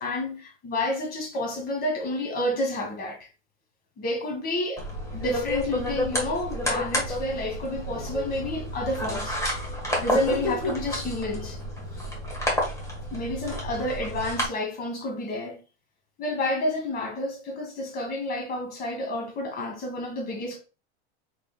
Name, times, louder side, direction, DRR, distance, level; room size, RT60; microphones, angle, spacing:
voice 1, 0.0-3.3 4.0-4.8 5.1-9.4 10.0-11.6 13.1-15.6 16.2-20.6, left 1 dB, 30° left, 1.7 m, -30 dB
sound 1, 4.8-14.5, left 1 dB, 10° left, 1.3 m, -30 dB
4.4 x 4.0 x 2.2 m
supercardioid pair, 135°, 32 cm